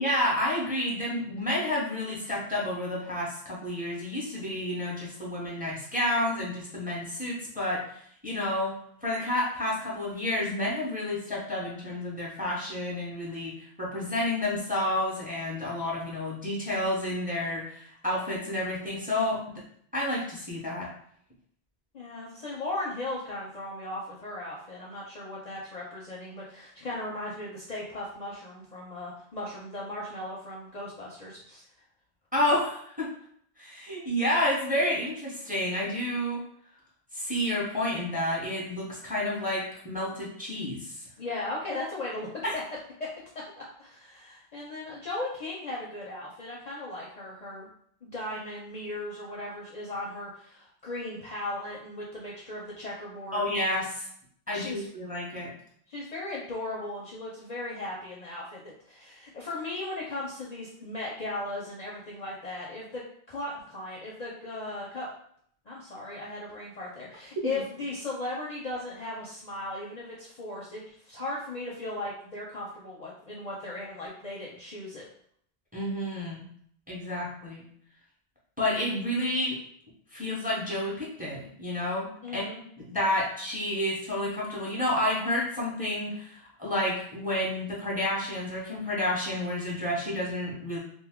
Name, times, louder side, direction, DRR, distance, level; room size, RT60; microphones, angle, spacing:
voice 1, 0.0-8.7 9.0-19.6 19.9-20.9 32.3-33.1 33.6-36.4 37.1-41.0 42.4-42.5 53.3-54.0 54.5-55.5 67.4-67.5 75.7-76.4 76.9-77.6 78.6-79.6 80.1-82.1 82.3-82.4 82.8-90.8, left 1 dB, 10° right, -5 dB, 0.8 m, -30 dB
voice 2, 21.9-31.6 41.2-42.3 42.5-42.6 43.8-47.7 48.0-53.4 54.5-54.8 55.9-65.1 65.7-75.1 82.2-82.6, left 2 dB, 50° left, -4 dB, 0.6 m, -37 dB
2.6 x 2.2 x 3.5 m, 0.64 s
omnidirectional pair, 1.0 m